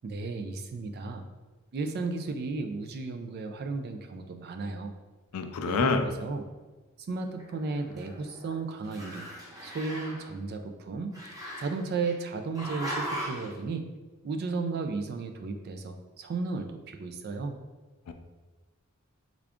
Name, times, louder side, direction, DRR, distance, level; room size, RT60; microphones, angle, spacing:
voice 1, 0.0-1.3 1.7-4.9 5.7-6.5 7.1-9.3 9.6-11.2 11.6-13.8 14.2-17.6, right 3 dB, 45° right, 6 dB, 0.3 m, -34 dB
voice 2, 5.3-6.0 18.1-18.2, left 4 dB, 75° left, 7 dB, 0.4 m, -27 dB
Growling, 7.3-8.6 8.8-10.3 11.1-12.1 12.5-13.5, equal, 15° right, 0.9 m, -38 dB
3.6 x 2.3 x 3.4 m, 1.2 s
head